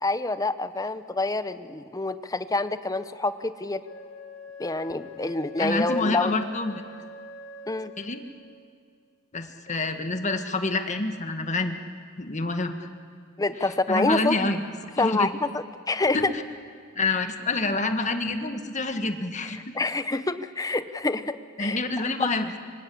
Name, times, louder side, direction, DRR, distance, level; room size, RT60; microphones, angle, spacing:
voice 1, 0.0-3.8 4.6-6.3 7.7-7.9 13.4-14.4 15.0-16.3 19.7-21.8, left 2 dB, 20° left, 12 dB, 0.9 m, -27 dB
Wind instrument woodwind instrument, 3.8-8.5, left 1 dB, 75° left, 3.5 m, -44 dB
voice 2, 5.6-6.8 8.0-8.2 9.3-11.8 12.2-12.9 13.6-14.6 15.0-15.3 16.1-16.2 16.9-19.7 21.6-22.5, left 3 dB, 40° left, 7 dB, 1.7 m, -27 dB
25.5 x 25.0 x 8.5 m, 2.1 s
head